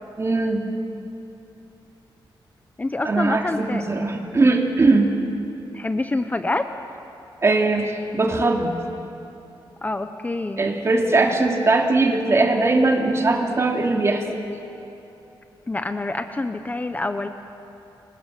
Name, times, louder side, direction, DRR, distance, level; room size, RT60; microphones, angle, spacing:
voice 1, 0.2-0.7 3.0-5.2 7.4-8.7 10.6-14.4, right 3 dB, 30° right, 2 dB, 3.0 m, -20 dB
voice 2, 2.8-3.8 5.7-6.7 9.8-10.6 15.7-17.3, left 2 dB, 20° left, 8 dB, 0.9 m, -26 dB
28.5 x 25.0 x 7.7 m, 2.9 s
wide cardioid pair, 120°, 9 cm